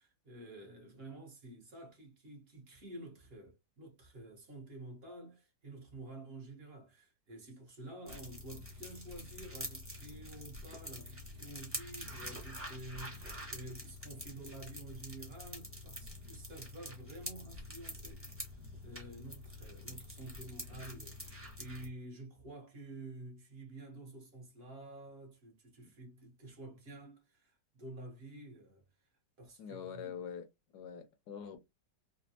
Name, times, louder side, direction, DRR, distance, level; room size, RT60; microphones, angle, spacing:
voice 1, 0.0-29.1 29.4-30.2, right 2 dB, 40° right, 1.0 m, -50 dB
sound 1, 8.1-21.9, left 1 dB, 10° right, 0.8 m, -46 dB
voice 2, 29.6-30.5 30.7-31.6, left 7 dB, 75° left, 1.0 m, -44 dB
3.3 x 2.1 x 2.7 m
omnidirectional pair, 1.9 m